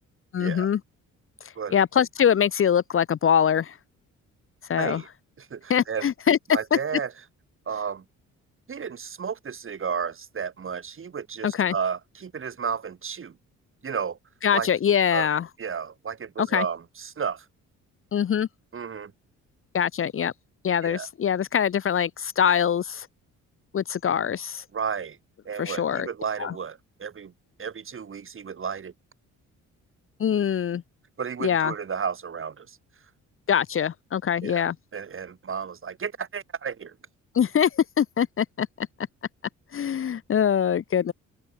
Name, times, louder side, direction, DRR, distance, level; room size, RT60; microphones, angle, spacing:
voice 1, 0.3-0.8 1.7-3.8 4.7-5.0 5.7-6.4 6.7-6.8 11.4-11.7 14.4-15.5 16.4-16.6 18.1-18.5 19.7-20.3 20.6-23.1 23.7-24.6 25.6-26.1 26.4-26.5 30.2-30.8 31.4-31.7 33.5-34.7 37.3-38.7 39.7-41.1, left 8 dB, 45° left, 0.9 m, -23 dB
voice 2, 4.8-5.1 5.4-6.1 6.5-7.1 7.7-8.0 8.7-13.3 13.8-14.2 14.5-14.7 15.1-15.3 15.6-17.4 18.7-19.1 20.8-21.1 24.7-25.2 25.4-27.3 27.6-28.9 31.2-32.8 34.4-34.7 34.9-36.9, right 6 dB, 45° right, 4.6 m, -32 dB
cardioid pair, 90°, 30 cm